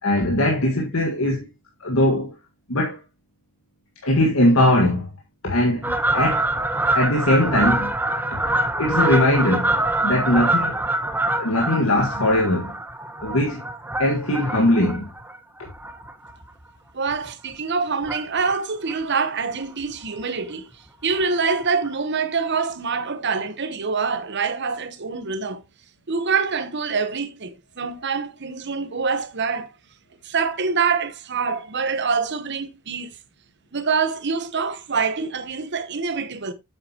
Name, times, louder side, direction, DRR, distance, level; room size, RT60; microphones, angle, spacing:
voice 1, 0.0-1.4 1.8-2.3 2.7-3.0 4.0-5.1 5.4-6.5 6.9-8.0 8.8-9.8 10.0-10.8 11.3-12.7 13.2-13.6 14.0-15.1, left 1 dB, 80° left, 1.8 m, -20 dB
Fowl, 5.8-16.6 17.1-17.3 18.0-18.6 18.9-19.0 19.2-19.3 19.6-19.7 20.0-20.2 21.2-21.3 21.8-21.9, right 2 dB, 10° right, 0.9 m, -25 dB
voice 2, 16.9-20.7 21.0-25.6 26.1-29.7 30.2-33.2 33.7-36.5, right 5 dB, 55° right, 1.1 m, -25 dB
8.6 x 7.6 x 2.9 m
head